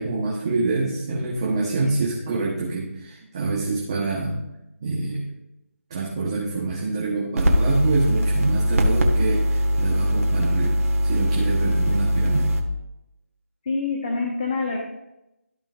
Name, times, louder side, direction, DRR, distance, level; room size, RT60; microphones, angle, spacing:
voice 1, 0.0-4.4 4.8-5.2 5.9-12.5, right 3 dB, 20° right, -5 dB, 1.2 m, -26 dB
sound 1, 7.4-12.6, equal, 75° right, 1.7 m, -21 dB
voice 2, 13.6-14.8, left 4 dB, 25° left, -1 dB, 1.0 m, -26 dB
14.0 x 5.6 x 2.6 m, 0.90 s
figure-of-eight pair, 175°, 8 cm